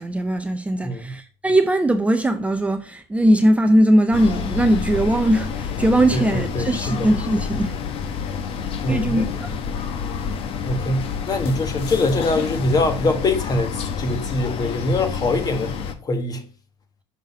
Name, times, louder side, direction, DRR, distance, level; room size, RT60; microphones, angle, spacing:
voice 1, 0.0-7.7 8.9-10.0, right 1 dB, 10° right, 0.5 m, -20 dB
voice 2, 0.8-1.1 6.1-7.1 8.8-9.3 10.6-15.8 16.0-16.4, left 2 dB, 35° left, 1.3 m, -23 dB
sound 1, 4.1-15.9, left 6 dB, 55° left, 0.9 m, -28 dB
6.5 x 4.1 x 5.2 m
cardioid pair, 115°, 12 cm